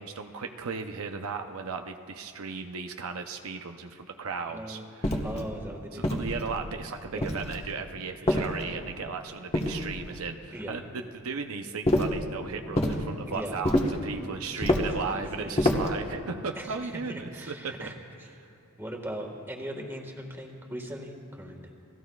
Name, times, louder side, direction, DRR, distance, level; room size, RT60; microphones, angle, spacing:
voice 1, 0.0-5.4 5.9-17.9, right 5 dB, 85° right, 5 dB, 0.7 m, -36 dB
voice 2, 4.4-4.8 5.2-6.1 7.1-7.3 8.2-8.5 10.5-10.8 13.3-13.6 14.7-15.8 16.5-17.9 18.8-21.7, right 1 dB, 10° right, 1 dB, 1.6 m, -39 dB
sound 1, 5.0-5.4 6.0-6.7 7.2-7.7 8.3-8.9 9.5-10.2 11.8-12.2 12.7-13.0 13.6-14.0 14.6-15.0 15.6-16.0, left 1 dB, 30° left, 1.2 m, -27 dB
29.5 x 18.5 x 2.4 m, 3.0 s
head